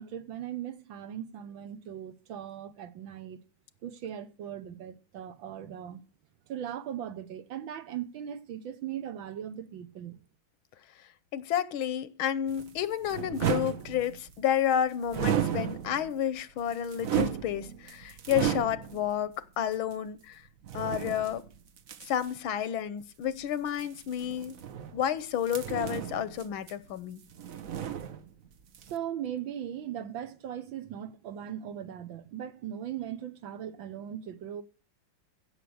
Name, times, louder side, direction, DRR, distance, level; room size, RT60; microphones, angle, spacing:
voice 1, 0.0-3.4 3.8-6.0 6.5-10.2 28.9-34.6, right 10 dB, 75° right, 1.7 m, -39 dB
voice 2, 11.3-20.4 20.7-21.4 22.0-24.5 24.9-27.2, left 9 dB, 90° left, 1.8 m, -30 dB
sound 1, 12.5-14.4 15.1-16.2 16.6-19.1 19.7-19.8 20.6-22.3 23.7-25.1 25.4-27.0 27.3-28.5 28.7-28.9, right 9 dB, 55° right, 1.1 m, -34 dB
16.0 x 6.6 x 7.9 m
omnidirectional pair, 2.2 m